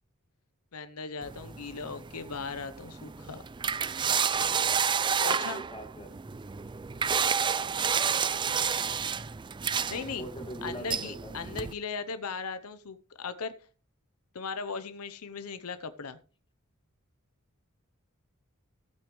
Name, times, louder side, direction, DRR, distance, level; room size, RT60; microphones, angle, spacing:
voice 1, 0.7-3.4 5.2-5.6 9.9-10.3 10.6-13.5 14.3-16.2, left 5 dB, 80° left, 12 dB, 0.8 m, -38 dB
sound 1, 1.2-11.7, right 7 dB, 20° right, 0.4 m, -30 dB
voice 2, 5.5-6.1 7.6-7.9 10.2-11.4, equal, 25° left, 5 dB, 2.1 m, -42 dB
16.0 x 8.6 x 3.1 m, 0.40 s
head